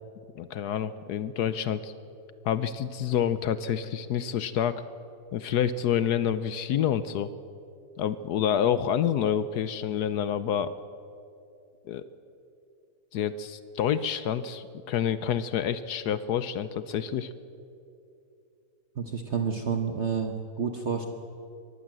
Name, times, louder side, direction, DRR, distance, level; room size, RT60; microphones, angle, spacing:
voice 1, 0.4-1.9 2.4-4.8 5.3-7.3 8.0-10.7 11.9-12.0 13.1-17.3, left 9 dB, 75° left, 13 dB, 1.2 m, -28 dB
voice 2, 18.9-21.1, right 6 dB, 45° right, 5 dB, 1.3 m, -29 dB
23.5 x 18.5 x 7.6 m, 2.7 s
omnidirectional pair, 1.8 m